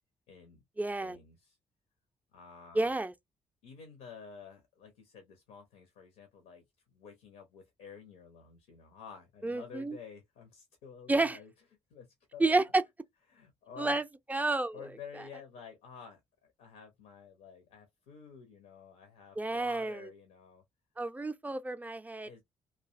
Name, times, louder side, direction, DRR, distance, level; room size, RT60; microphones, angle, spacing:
voice 1, 0.3-0.6 1.0-1.6 2.3-2.9 3.6-11.5 11.9-12.6 13.3-14.0 14.7-20.6 22.2-22.4, left 6 dB, 70° left, 0.6 m, -51 dB
voice 2, 0.8-1.2 2.7-3.1 9.4-10.0 11.1-11.4 12.4-12.8 13.8-14.0 14.3-14.8 19.4-20.1 21.0-22.4, right 2 dB, 10° right, 0.4 m, -30 dB
2.4 x 2.2 x 2.3 m
figure-of-eight pair, 40°, 14 cm